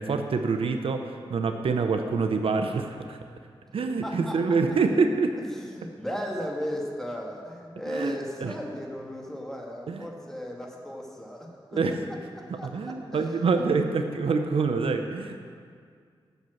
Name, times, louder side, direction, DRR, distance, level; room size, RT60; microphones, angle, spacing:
voice 1, 0.0-3.2 3.7-5.4 7.9-8.5 9.9-10.1 11.7-12.0 12.5-15.4, right 4 dB, 75° right, 6 dB, 0.7 m, -26 dB
voice 2, 4.0-4.6 5.5-11.5 12.6-13.7, equal, 5° left, -1 dB, 1.8 m, -36 dB
8.0 x 7.0 x 7.7 m, 2.1 s
cardioid pair, 65°, 9 cm